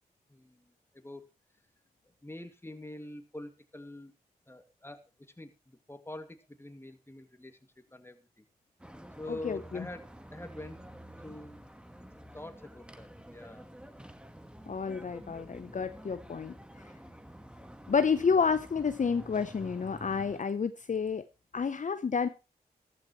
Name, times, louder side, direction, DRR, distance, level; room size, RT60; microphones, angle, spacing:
voice 1, 0.3-1.3 2.2-4.1 4.5-5.0 5.4-7.6 7.9-8.4 9.2-10.8 11.2-11.6 12.3-13.7, left 1 dB, 15° left, 2.3 m, -45 dB
sound 1, 8.8-20.4, equal, 5° right, 1.5 m, -49 dB
voice 2, 9.3-9.9 14.7-16.5 17.9-21.3 21.5-22.3, left 5 dB, 50° left, 0.8 m, -30 dB
14.5 x 12.5 x 3.1 m
supercardioid pair, 40°, 17 cm